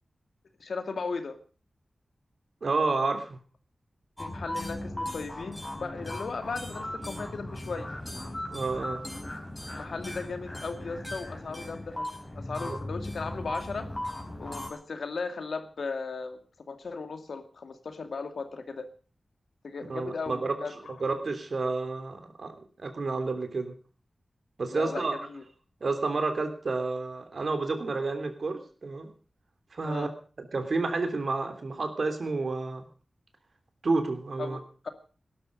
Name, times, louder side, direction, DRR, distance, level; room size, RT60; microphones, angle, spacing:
voice 1, 0.6-1.4 4.2-7.9 9.7-13.9 14.4-16.4 16.7-18.9 19.6-21.0 24.7-25.4 29.8-30.1 34.4-34.9, left 4 dB, 90° left, 7 dB, 2.3 m, -37 dB
voice 2, 2.6-3.4 8.5-9.0 12.6-12.8 19.9-20.5 21.0-22.5 22.8-23.7 24.6-25.2 25.8-29.1 29.7-30.1 30.4-32.9 33.8-34.6, right 3 dB, 65° right, 7 dB, 3.3 m, -30 dB
sound 1, 4.2-14.7, left 1 dB, 20° left, 5.1 m, -37 dB
18.0 x 12.0 x 5.3 m, 0.39 s
wide cardioid pair, 100°, 0 cm